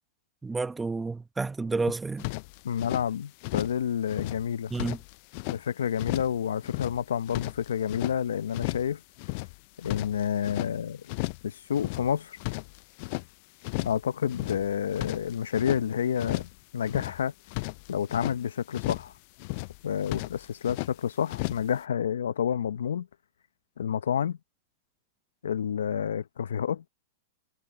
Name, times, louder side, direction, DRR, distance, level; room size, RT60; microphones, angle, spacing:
voice 1, 0.4-2.3 4.7-5.0, right 3 dB, 10° right, 0.9 m, -30 dB
sound 1, 2.2-3.1 3.4-5.6 6.0-6.4 6.6-8.2 8.5-8.9 9.2-10.7 11.1-11.5 11.7-13.3 13.6-14.0 14.3-15.8 16.2-16.6 16.8-18.4 18.7-19.1 19.4-19.8 20.0-20.9 21.3-21.7, left 26 dB, 50° left, 0.4 m, -34 dB
voice 2, 2.6-4.7 5.5-9.0 9.8-11.0 11.4-12.4 13.8-17.3 17.9-19.1 19.8-23.1 23.8-24.4 25.4-26.8, left 8 dB, 80° left, 0.8 m, -29 dB
hypercardioid pair, 115°, 0 cm